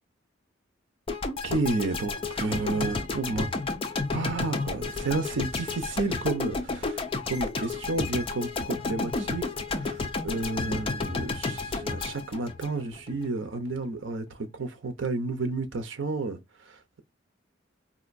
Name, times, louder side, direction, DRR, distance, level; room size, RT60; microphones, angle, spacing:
sound 1, 1.1-13.3, left 3 dB, 30° left, 0.5 m, -31 dB
voice 1, 1.4-3.5 4.1-17.0, right 3 dB, 80° right, 0.7 m, -31 dB
4.2 x 2.6 x 2.5 m
head